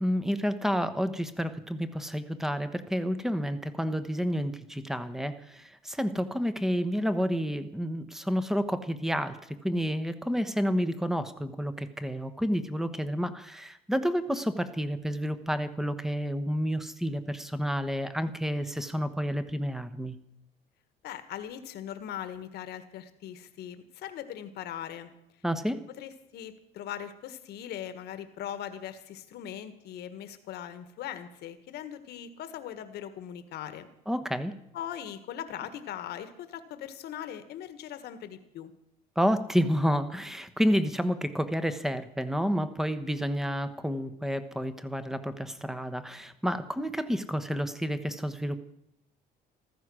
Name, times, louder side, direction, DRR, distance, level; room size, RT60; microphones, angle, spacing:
voice 1, 0.0-9.4 9.6-20.2 25.4-25.8 34.1-34.5 39.2-48.6, equal, ahead, 10 dB, 1.1 m, -30 dB
voice 2, 21.0-25.1 26.0-33.9 34.7-38.7, left 10 dB, 75° left, 11 dB, 1.5 m, -40 dB
14.5 x 14.0 x 6.2 m, 0.81 s
cardioid pair, 110°, 17 cm